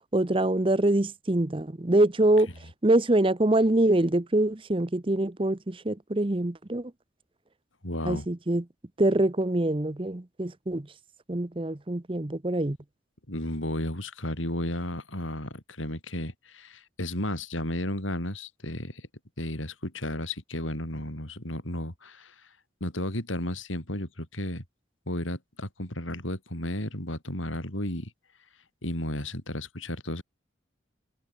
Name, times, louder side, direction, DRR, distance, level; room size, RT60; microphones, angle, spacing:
voice 1, 0.1-2.5 2.8-6.9 8.1-8.6 9.0-10.9 11.3-12.8, right 1 dB, 25° right, 0.8 m, -24 dB
voice 2, 7.8-8.3 13.3-19.0 19.4-22.3 22.8-24.6 25.1-28.1 28.8-30.2, left 1 dB, 90° left, 6.3 m, -33 dB
head